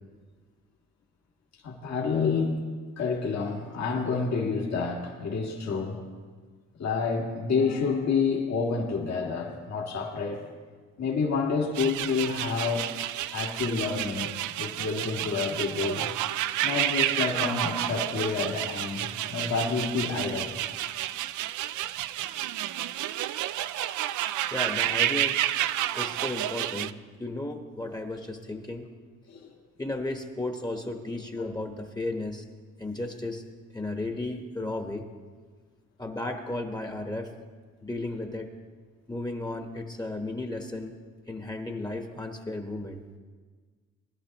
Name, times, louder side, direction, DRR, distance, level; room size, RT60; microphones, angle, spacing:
voice 1, 1.6-2.6 3.0-6.0 6.8-10.4 11.0-12.8 13.3-14.3 14.6-16.1 16.6-20.5 29.3-29.5, left 5 dB, 60° left, -1 dB, 2.1 m, -28 dB
sound 1, 11.7-26.9, right 13 dB, 75° right, 0.5 m, -30 dB
voice 2, 24.5-25.4 25.9-26.9 27.2-28.9 29.8-32.4 32.8-33.4 33.7-35.0 36.0-37.3 37.8-38.5 39.1-41.0 41.3-43.0, left 2 dB, 15° left, 4 dB, 1.2 m, -34 dB
20.5 x 11.0 x 3.0 m, 1.5 s
cardioid pair, 90°, 30 cm